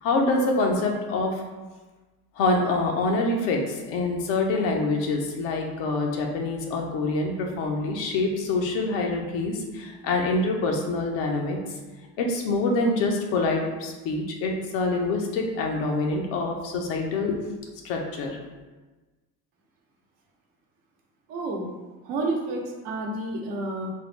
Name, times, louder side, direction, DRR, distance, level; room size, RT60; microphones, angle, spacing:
voice 1, 0.0-1.3 2.4-11.6 12.2-17.3 17.8-18.4, left 2 dB, 80° left, 1 dB, 0.7 m, -25 dB
voice 2, 21.3-21.7 22.0-23.9, right 2 dB, 85° right, -1 dB, 0.8 m, -30 dB
3.7 x 2.0 x 3.1 m, 1.2 s
supercardioid pair, 65°, 43 cm